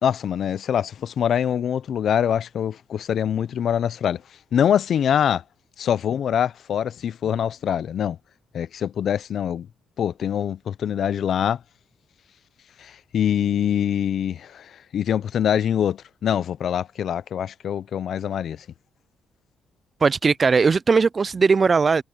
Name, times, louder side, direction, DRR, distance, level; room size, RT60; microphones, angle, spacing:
voice 1, 0.0-4.2 4.5-5.4 5.8-8.2 8.5-9.7 10.0-11.6 12.8-18.6, left 9 dB, 60° left, 0.7 m, -24 dB
voice 2, 20.0-22.0, right 5 dB, 35° right, 0.3 m, -18 dB
cardioid pair, 90°, 0 cm